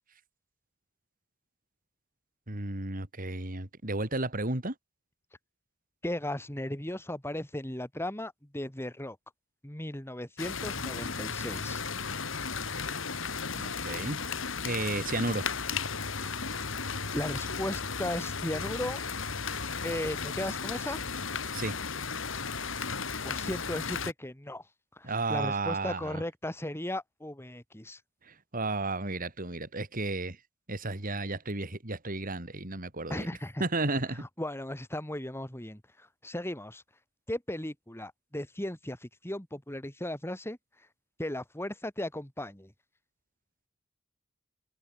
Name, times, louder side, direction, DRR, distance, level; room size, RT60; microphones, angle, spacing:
voice 1, 2.5-4.7 13.5-14.2 14.6-15.5 21.5-21.7 25.0-26.2 28.5-30.4 30.7-33.3 33.6-34.2, right 2 dB, 45° right, 3.4 m, -33 dB
voice 2, 6.0-9.2 9.6-11.8 16.3-16.4 17.1-19.0 19.8-21.0 23.2-24.6 25.0-28.0 33.1-33.6 34.2-36.8 37.3-40.6 41.2-42.7, left 1 dB, 10° left, 2.6 m, -36 dB
sound 1, 10.4-24.1, left 5 dB, 70° left, 2.8 m, -35 dB
head